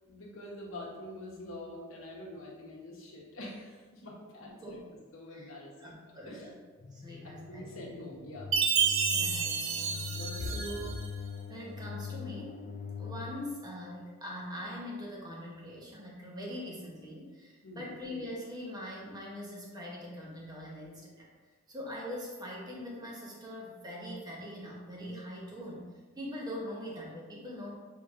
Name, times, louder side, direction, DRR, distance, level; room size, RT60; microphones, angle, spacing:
voice 1, 0.1-4.8 5.1-5.9 6.2-6.5 7.5-8.5 10.1-10.6 17.6-17.9, left 2 dB, 75° left, -4 dB, 1.1 m, -44 dB
voice 2, 5.8-6.5 6.9-7.7 9.1-10.1 10.5-10.9 11.5-21.3 21.7-25.9 26.2-27.7, equal, 20° right, -3 dB, 0.8 m, -42 dB
sound 1, 6.8-13.5, left 6 dB, 30° left, 0.4 m, -43 dB
Chime, 8.5-11.0, right 6 dB, 70° right, 0.5 m, -29 dB
6.2 x 2.8 x 2.5 m, 1.4 s
head